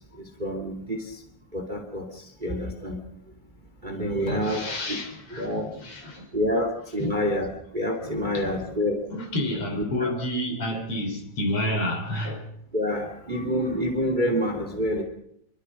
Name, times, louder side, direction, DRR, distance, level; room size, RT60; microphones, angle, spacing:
voice 1, 0.2-1.2 1.5-3.0 3.8-5.0 5.3-5.7 6.3-9.0 9.8-10.1 12.7-15.0, equal, 15° right, 2.6 m, -28 dB
voice 2, 4.3-6.3 6.5-6.7 7.0-7.1 8.0-8.6 9.1-12.4, left 1 dB, 50° left, 4.4 m, -30 dB
26.0 x 23.5 x 5.9 m
omnidirectional pair, 3.4 m